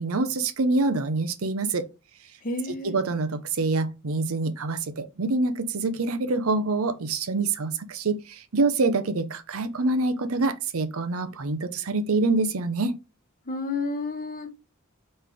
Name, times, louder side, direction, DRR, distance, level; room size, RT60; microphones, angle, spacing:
voice 1, 0.0-1.9 2.7-13.0, right 3 dB, 65° right, 0.7 m, -26 dB
voice 2, 2.4-3.0 13.5-14.5, left 3 dB, 40° left, 0.9 m, -30 dB
4.2 x 3.3 x 3.5 m
head